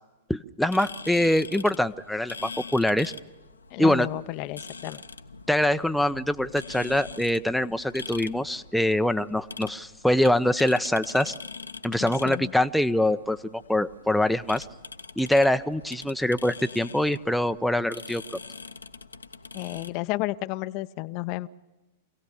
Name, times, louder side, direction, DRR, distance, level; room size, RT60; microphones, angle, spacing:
voice 1, 0.3-3.1 3.8-4.1 5.5-11.3 11.8-14.7 15.2-18.2, left 1 dB, ahead, 9 dB, 0.6 m, -24 dB
sound 1, 0.6-19.9, left 4 dB, 90° left, 1.0 m, -43 dB
voice 2, 3.7-5.0 12.0-12.5 19.5-21.5, left 18 dB, 45° left, 13 dB, 0.6 m, -32 dB
26.0 x 17.0 x 7.1 m, 1.1 s
figure-of-eight pair, 100°, 0 cm